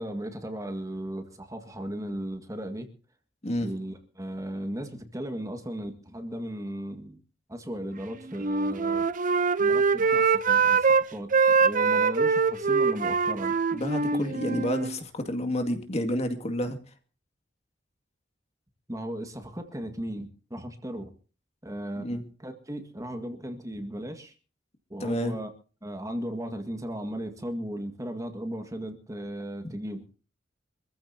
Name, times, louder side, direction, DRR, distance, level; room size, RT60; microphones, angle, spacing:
voice 1, 0.0-2.9 3.6-7.2 7.5-9.1 9.6-13.6 14.1-14.3 18.9-21.1 21.6-24.3 24.9-25.5 25.8-30.2, equal, 20° right, 1.8 m, -36 dB
Wind instrument woodwind instrument, 8.3-11.0 11.3-14.9, right 5 dB, 45° right, 0.7 m, -23 dB
voice 2, 13.7-16.8 22.0-22.3 25.0-25.3 29.6-29.7, left 1 dB, 35° left, 2.2 m, -30 dB
25.5 x 14.5 x 2.8 m
head